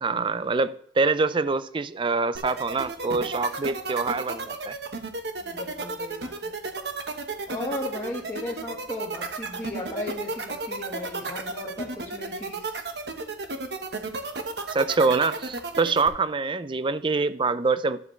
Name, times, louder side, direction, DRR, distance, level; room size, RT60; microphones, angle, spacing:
voice 1, 0.0-4.8 14.7-18.0, right 4 dB, 30° right, 0.4 m, -25 dB
sound 1, 2.4-16.1, right 3 dB, 70° right, 1.1 m, -32 dB
voice 2, 5.4-6.5 7.5-12.8, left 2 dB, 15° left, 1.5 m, -36 dB
12.0 x 7.2 x 3.2 m
head